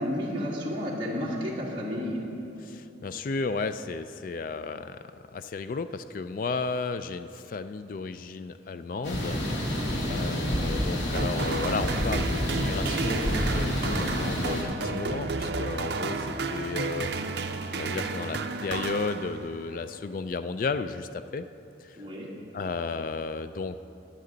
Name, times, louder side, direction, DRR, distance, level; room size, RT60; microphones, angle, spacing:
voice 1, 0.0-2.2 9.8-10.2 22.0-22.3, equal, 25° right, -5 dB, 2.1 m, -32 dB
voice 2, 2.6-5.0 5.3-9.8 10.1-17.3 17.7-21.5 21.8-22.0 22.5-23.8, left 4 dB, 45° left, 11 dB, 0.3 m, -33 dB
sound 1, 9.0-14.6, equal, 80° left, 2.2 m, -29 dB
sound 2, 11.1-19.7, right 4 dB, 70° right, 0.6 m, -32 dB
sound 3, 12.9-19.8, equal, 50° right, 1.5 m, -43 dB
22.0 x 7.6 x 3.9 m, 2.7 s
head